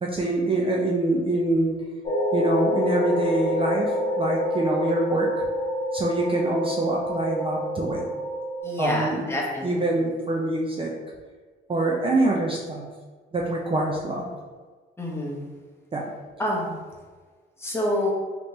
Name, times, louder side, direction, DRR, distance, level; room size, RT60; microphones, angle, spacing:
voice 1, 0.0-1.8 2.3-5.3 5.9-8.0 8.8-9.3 9.6-10.9 11.7-12.9 13.3-14.3 15.9-16.1, right 2 dB, 25° right, -1 dB, 0.5 m, -25 dB
sound 1, 2.0-8.6, left 1 dB, 35° left, 1.2 m, -27 dB
voice 2, 8.6-9.7 15.0-15.4 16.4-16.7 17.6-18.1, left 1 dB, 10° left, -3 dB, 0.8 m, -27 dB
3.3 x 2.9 x 2.7 m, 1.4 s
cardioid pair, 90°, 20 cm